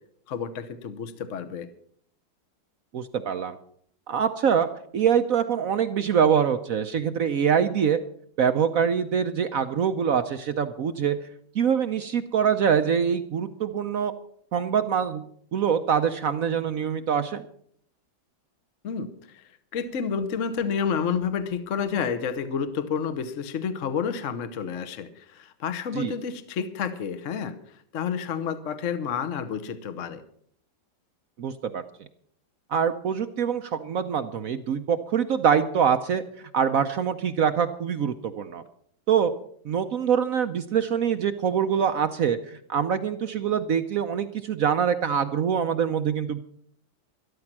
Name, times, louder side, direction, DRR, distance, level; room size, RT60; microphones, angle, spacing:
voice 1, 0.3-1.7 18.8-19.4 19.7-30.2, left 6 dB, 50° left, 11 dB, 1.2 m, -30 dB
voice 2, 2.9-3.6 4.1-8.0 8.4-11.2 11.5-14.1 14.5-15.2 15.5-17.4 25.9-26.1 31.4-31.8 32.7-36.2 36.5-38.6 39.1-39.3 39.6-46.4, right 7 dB, 60° right, 9 dB, 1.0 m, -24 dB
13.0 x 12.5 x 6.0 m, 0.63 s
omnidirectional pair, 2.0 m